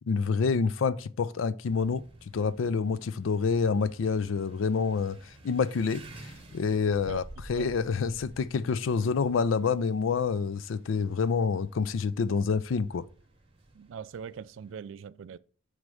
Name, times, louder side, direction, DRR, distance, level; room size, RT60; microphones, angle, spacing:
voice 1, 0.1-2.0 2.3-7.2 7.5-13.1, left 5 dB, 75° left, 0.4 m, -27 dB
sound 1, 1.6-14.7, right 1 dB, 30° right, 0.9 m, -52 dB
voice 2, 13.7-15.4, right 7 dB, 70° right, 0.3 m, -41 dB
6.2 x 3.2 x 4.7 m
head